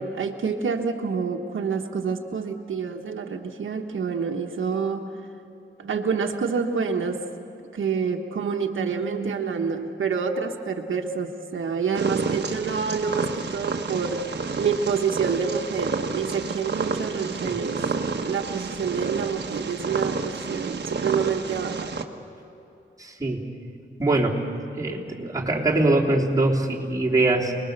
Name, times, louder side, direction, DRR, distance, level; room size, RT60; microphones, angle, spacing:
voice 1, 0.0-5.1 5.8-7.2 7.7-14.2 14.6-17.8 18.2-21.9, right 5 dB, 90° right, 3 dB, 1.4 m, -27 dB
Purr, 11.9-22.0, right 4 dB, 60° right, 1.4 m, -30 dB
voice 2, 23.0-23.5 24.0-24.4 24.8-27.5, right 2 dB, 15° right, -4 dB, 3.4 m, -23 dB
28.5 x 21.0 x 6.7 m, 2.8 s
wide cardioid pair, 95°, 20 cm